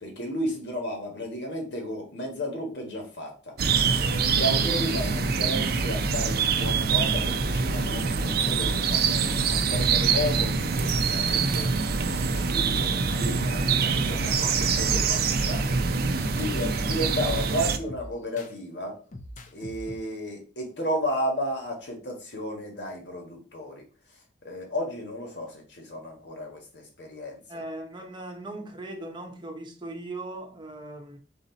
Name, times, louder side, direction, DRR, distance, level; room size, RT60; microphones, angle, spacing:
voice 1, 0.0-3.5 4.0-11.7 12.1-16.1 16.4-19.0 19.5-23.8 24.4-27.6, equal, 70° left, 1.4 m, -33 dB
sound 1, 3.6-17.8, right 5 dB, 60° right, 0.4 m, -25 dB
sound 2, 10.6-16.6 17.1-18.5 19.1-20.0, left 1 dB, 45° left, 0.5 m, -43 dB
voice 2, 27.5-31.2, right 2 dB, 25° right, 0.8 m, -39 dB
4.1 x 2.7 x 4.0 m
head